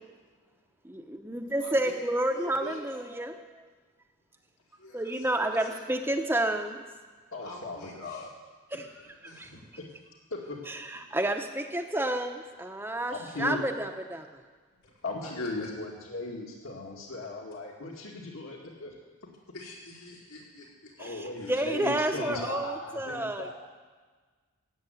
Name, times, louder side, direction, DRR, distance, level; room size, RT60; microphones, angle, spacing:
voice 1, 0.8-3.5 4.9-6.8 8.7-8.9 9.2-9.5 10.7-14.3 21.0-23.5, right 1 dB, 10° right, 4 dB, 0.8 m, -30 dB
voice 2, 1.6-2.8 4.8-5.1 5.5-5.8 7.4-8.2 9.2-9.6 14.8-14.9 15.2-15.7 19.5-20.9 21.4-21.5, left 1 dB, 85° left, -4 dB, 4.4 m, -46 dB
voice 3, 7.3-8.3 8.7-9.1 9.8-9.9 10.3-10.6 13.1-13.6 15.0-18.9 21.0-23.5, left 2 dB, 65° left, -1 dB, 2.1 m, -37 dB
16.5 x 7.9 x 9.3 m, 1.4 s
head